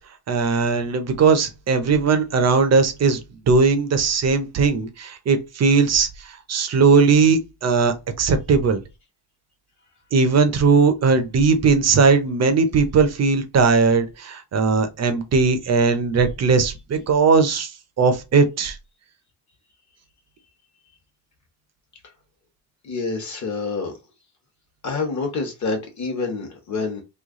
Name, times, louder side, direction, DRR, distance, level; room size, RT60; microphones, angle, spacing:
voice 1, 0.3-3.2 3.5-6.1 6.5-8.8 10.1-17.7 18.0-18.8, right 4 dB, 40° right, 0.6 m, -18 dB
voice 2, 22.8-23.9 24.8-27.0, left 4 dB, 40° left, 1.1 m, -27 dB
3.2 x 2.3 x 3.6 m
cardioid pair, 150°, 42 cm